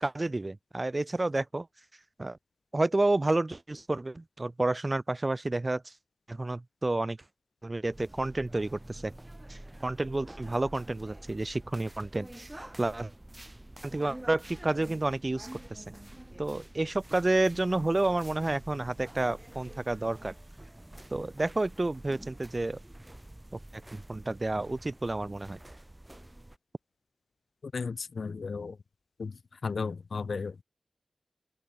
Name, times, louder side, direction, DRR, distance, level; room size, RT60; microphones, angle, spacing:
voice 1, 0.0-1.7 2.2-2.4 2.7-5.9 6.3-7.2 7.6-9.1 9.5-12.5 12.8-13.1 13.8-15.8 16.4-20.3 21.1-22.8 23.5-25.6, right 2 dB, 35° right, 0.3 m, -30 dB
sound 1, 7.9-26.6, right 1 dB, 20° right, 4.6 m, -48 dB
voice 2, 27.6-28.8 29.2-30.6, left 4 dB, 75° left, 0.9 m, -35 dB
open air
wide cardioid pair, 65°, 0 cm